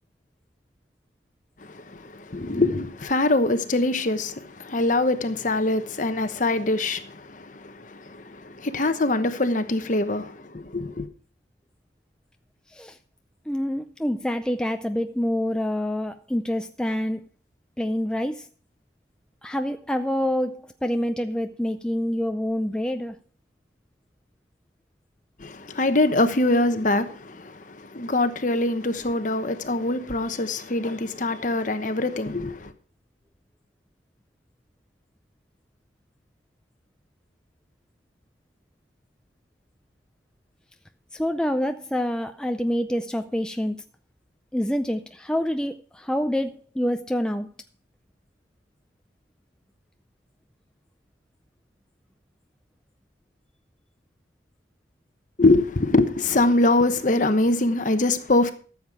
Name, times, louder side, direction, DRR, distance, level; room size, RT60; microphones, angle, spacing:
voice 1, 1.6-11.1 25.4-32.7 55.4-58.5, left 2 dB, 45° left, 1.0 m, -23 dB
voice 2, 13.5-17.2 17.8-18.5 19.4-23.2 41.1-43.8 44.5-47.5, equal, 5° left, 0.4 m, -26 dB
14.0 x 7.4 x 4.8 m
head